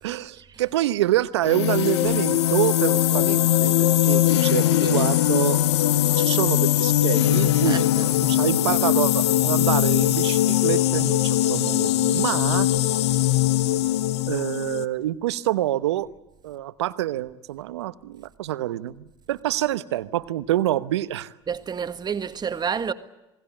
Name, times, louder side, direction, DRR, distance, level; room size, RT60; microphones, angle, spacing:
voice 1, 0.0-5.6 6.2-12.7 14.3-16.1 16.4-21.3, right 14 dB, 80° right, 1.0 m, -26 dB
sound 1, 1.4-14.9, left 14 dB, 80° left, 1.0 m, -21 dB
voice 2, 7.6-8.1 12.1-12.2 21.5-22.9, right 7 dB, 30° right, 1.6 m, -30 dB
27.5 x 20.5 x 8.7 m
hypercardioid pair, 80°, 14 cm